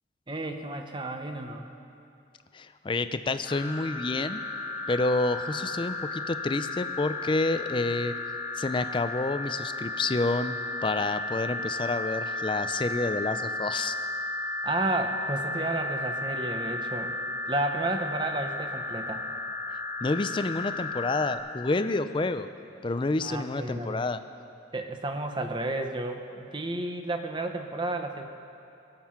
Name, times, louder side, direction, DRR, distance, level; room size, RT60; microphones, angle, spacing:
voice 1, 0.3-1.7 14.6-17.2 17.5-19.2 23.2-24.1 24.7-28.2, right 2 dB, 25° right, 5 dB, 0.9 m, -32 dB
voice 2, 2.5-4.4 4.9-8.1 8.6-10.6 10.8-13.9 20.0-22.5 22.8-24.2, left 2 dB, 25° left, 11 dB, 0.4 m, -29 dB
sound 1, 3.5-21.4, left 2 dB, 50° left, 1.4 m, -34 dB
21.0 x 7.7 x 5.8 m, 2.6 s
head